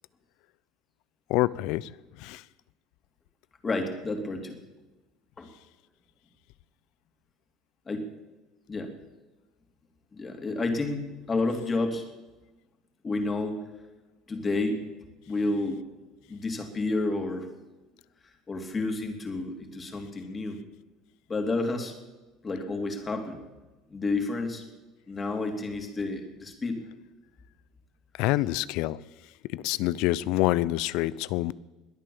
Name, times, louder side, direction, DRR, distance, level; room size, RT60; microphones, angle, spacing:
voice 1, 1.3-1.9 2.2-2.4 28.2-29.0 29.5-31.5, left 17 dB, 75° left, 20 dB, 0.5 m, -26 dB
voice 2, 3.6-4.6 5.4-5.5 7.9-8.1 8.7-8.9 10.1-12.0 13.0-13.6 14.3-14.8 15.3-15.8 16.3-17.5 18.5-20.6 21.3-21.9 22.4-23.4 23.9-24.6 25.1-26.8, left 2 dB, 25° left, 4 dB, 3.0 m, -30 dB
21.5 x 9.0 x 7.1 m, 1.1 s
supercardioid pair, 105°, 0 cm